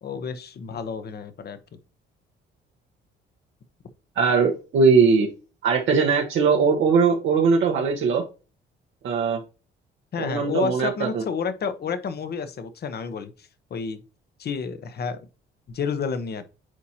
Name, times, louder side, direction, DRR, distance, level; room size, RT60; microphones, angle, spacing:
voice 1, 0.0-1.6 10.1-13.3 13.7-14.0 14.4-15.2 15.7-16.4, left 5 dB, 55° left, 1.1 m, -30 dB
voice 2, 4.2-5.3 5.6-8.2 9.0-9.4 10.2-11.2, right 5 dB, 75° right, 1.2 m, -20 dB
9.2 x 4.2 x 2.9 m
cardioid pair, 90°, 20 cm